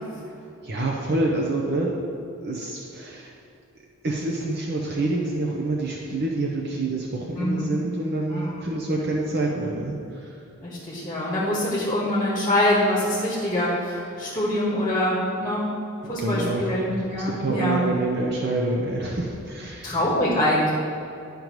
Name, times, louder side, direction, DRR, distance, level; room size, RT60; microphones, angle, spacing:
voice 1, 0.6-3.3 4.0-10.3 16.0-16.7 17.2-20.0, right 2 dB, 50° right, -2 dB, 0.6 m, -27 dB
voice 2, 7.4-7.7 8.3-8.5 10.6-15.6 16.1-17.8 19.8-20.7, left 1 dB, 15° left, -6 dB, 1.3 m, -24 dB
11.0 x 5.2 x 3.1 m, 2.6 s
head